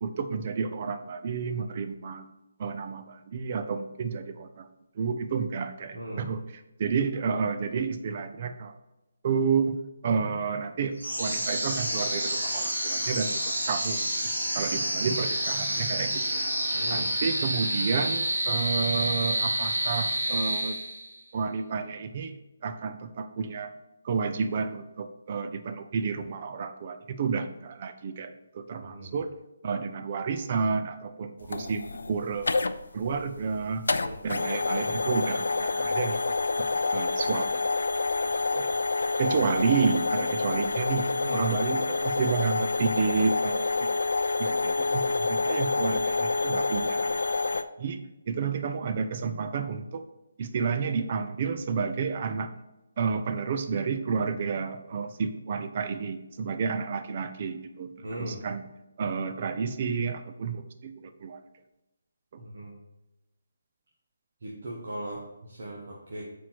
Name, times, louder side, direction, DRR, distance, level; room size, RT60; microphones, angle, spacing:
voice 1, 0.0-2.3 2.6-4.7 5.0-6.4 6.8-8.7 9.2-9.8 10.0-16.5 16.9-20.7 21.3-22.3 22.6-23.7 24.0-29.3 29.6-31.8 32.1-32.6 32.9-33.8 34.2-36.3 36.9-37.6 38.5-38.8 39.2-43.9 44.4-47.2 47.8-50.0 50.4-52.5 53.0-58.6 59.0-61.4 62.3-62.4, right 5 dB, 40° right, 9 dB, 0.6 m, -30 dB
voice 2, 5.9-6.3 16.7-17.1 28.8-29.1 31.5-31.7 33.9-34.2 39.5-39.6 41.1-41.5 58.0-58.4 62.4-62.7 64.4-66.2, right 1 dB, 60° right, -3 dB, 1.4 m, -38 dB
sound 1, 11.0-21.2, right 1 dB, 85° right, 2.3 m, -29 dB
sound 2, 31.4-47.6, left 3 dB, 70° left, 0.4 m, -28 dB
7.1 x 4.6 x 4.5 m, 0.98 s
figure-of-eight pair, 150°, 0 cm